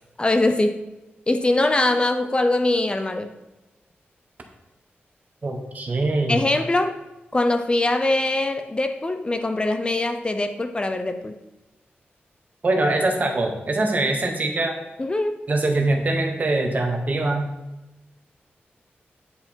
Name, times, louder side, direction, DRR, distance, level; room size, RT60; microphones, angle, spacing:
voice 1, 0.2-0.8 1.3-3.4 6.3-7.0 7.3-11.4 15.0-15.4, left 2 dB, 25° left, 8 dB, 0.5 m, -22 dB
voice 2, 5.4-6.4 12.6-14.8 15.5-17.5, right 2 dB, 45° right, 4 dB, 1.3 m, -23 dB
9.9 x 5.2 x 4.5 m, 1.0 s
wide cardioid pair, 110°, 4 cm